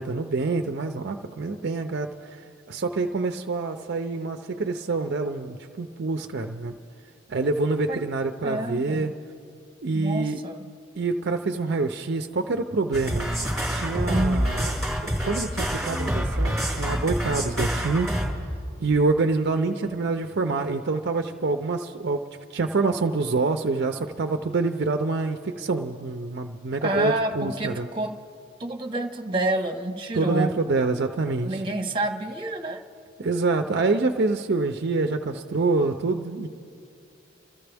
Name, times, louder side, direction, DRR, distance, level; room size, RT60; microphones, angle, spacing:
voice 1, 0.0-6.7 7.3-9.1 9.8-10.4 11.0-13.3 13.7-14.7 15.0-18.1 18.8-22.2 22.5-27.9 30.1-31.6 33.2-36.5, right 3 dB, 55° right, 6 dB, 0.5 m, -26 dB
voice 2, 8.4-9.1 9.9-10.7 14.0-14.5 26.8-28.2 28.6-30.6 31.4-32.8, right 1 dB, 25° right, 3 dB, 1.1 m, -28 dB
sound 1, 12.9-18.3, equal, ahead, 4.9 m, -27 dB
28.0 x 14.0 x 3.5 m, 2.5 s
head